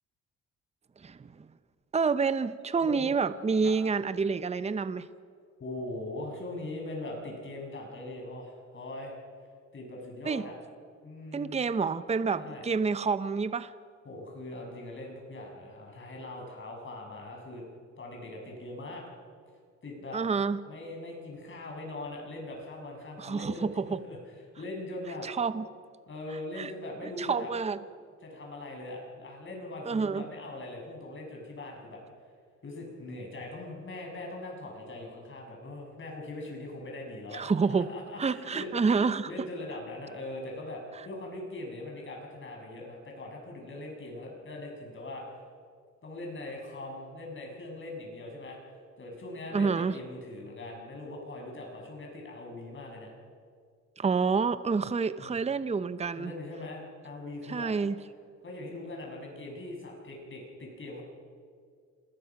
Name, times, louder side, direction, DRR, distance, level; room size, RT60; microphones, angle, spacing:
voice 1, 1.0-1.5 1.9-5.1 10.3-10.4 11.3-13.7 20.1-20.6 23.2-24.0 25.2-25.7 26.6-26.7 27.0-27.8 29.9-30.2 37.3-37.9 38.2-39.3 49.5-50.0 54.0-56.3 57.5-57.9, right 5 dB, 20° right, 14 dB, 0.7 m, -28 dB
voice 2, 2.8-3.1 3.6-3.7 5.6-9.1 9.7-10.6 11.0-11.6 12.3-12.7 14.0-17.6 18.0-19.0 19.8-20.2 20.6-24.2 24.6-25.3 26.1-27.5 28.2-32.0 32.6-45.3 46.0-48.6 49.0-53.1 55.1-55.4 56.1-57.7 58.4-61.0, left 2 dB, 40° left, 0 dB, 6.7 m, -41 dB
26.5 x 20.0 x 6.0 m, 2.1 s
cardioid pair, 90°, 30 cm